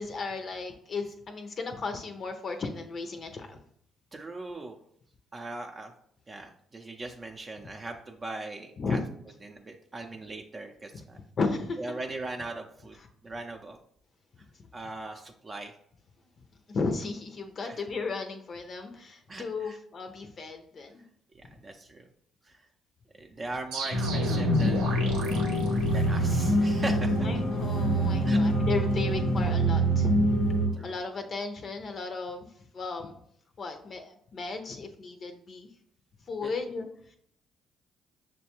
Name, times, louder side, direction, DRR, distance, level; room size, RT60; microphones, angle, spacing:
voice 1, 0.0-3.6 8.8-9.0 10.9-11.0 11.4-11.8 16.7-21.0 24.1-24.2 27.2-30.2 30.8-33.2 33.6-35.7 36.3-37.2, left 4 dB, 50° left, 6 dB, 0.5 m, -35 dB
voice 2, 4.1-4.8 5.3-5.9 6.3-11.2 11.8-13.0 13.2-13.8 14.7-15.7 17.6-17.8 19.3-19.8 21.6-22.1 22.4-22.7 23.2-25.4 25.9-27.3 28.2-28.4 30.7-31.4 36.4-36.6, right 2 dB, 35° right, 3 dB, 0.5 m, -40 dB
sound 1, 23.7-26.5, right 1 dB, 80° right, 0.8 m, -33 dB
sound 2, 23.9-30.7, right 1 dB, 90° left, 1.0 m, -25 dB
6.2 x 2.2 x 2.9 m, 0.67 s
hypercardioid pair, 55°, 0 cm